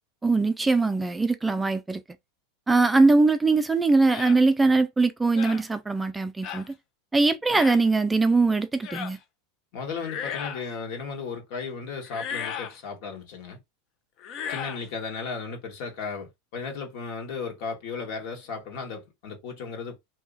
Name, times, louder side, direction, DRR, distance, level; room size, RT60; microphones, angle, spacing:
voice 1, 0.2-2.0 2.7-6.7 7.1-9.2, right 3 dB, 10° right, 0.3 m, -21 dB
sound 1, 4.1-4.4 5.3-5.6 6.4-6.7 7.5-7.8 8.8-9.2 9.9-10.7 12.0-12.8 14.2-14.8, left 8 dB, 45° left, 0.6 m, -35 dB
voice 2, 9.7-13.6 14.4-20.0, left 5 dB, 65° left, 1.5 m, -35 dB
2.8 x 2.4 x 3.8 m
hypercardioid pair, 110°, 0 cm